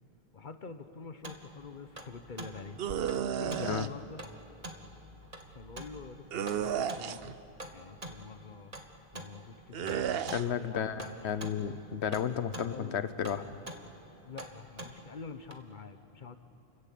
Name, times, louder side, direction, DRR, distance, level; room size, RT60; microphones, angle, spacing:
voice 1, 0.3-2.8 3.3-4.2 5.5-7.4 7.7-8.7 9.1-11.3 11.6-11.8 12.7-13.0 14.2-16.4, left 4 dB, 50° left, 10 dB, 1.1 m, -46 dB
sound 1, 1.2-15.5, right 1 dB, 35° right, 1.5 m, -47 dB
sound 2, 2.8-3.9 6.3-7.3 9.7-10.4, right 9 dB, 70° right, 0.9 m, -33 dB
voice 2, 10.3-13.5, left 8 dB, 90° left, 13 dB, 1.1 m, -33 dB
29.5 x 14.5 x 8.5 m, 2.9 s
omnidirectional pair, 1.1 m